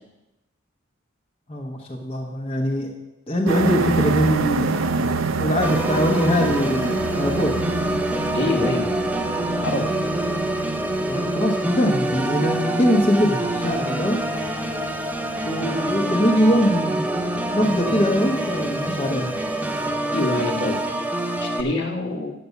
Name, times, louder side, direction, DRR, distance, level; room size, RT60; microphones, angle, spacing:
voice 1, 1.5-2.9 3.3-7.6 11.1-14.2 15.4-17.1 17.5-19.3, equal, 30° left, -1 dB, 1.0 m, -22 dB
sound 1, 3.5-20.0, right 4 dB, 75° right, 0.6 m, -29 dB
Organ, 5.6-21.6, right 1 dB, 5° right, 0.5 m, -26 dB
voice 2, 8.3-8.9 9.6-9.9 20.1-20.8 21.4-22.3, left 2 dB, 55° left, 2 dB, 1.3 m, -25 dB
7.7 x 6.7 x 8.2 m, 0.98 s
head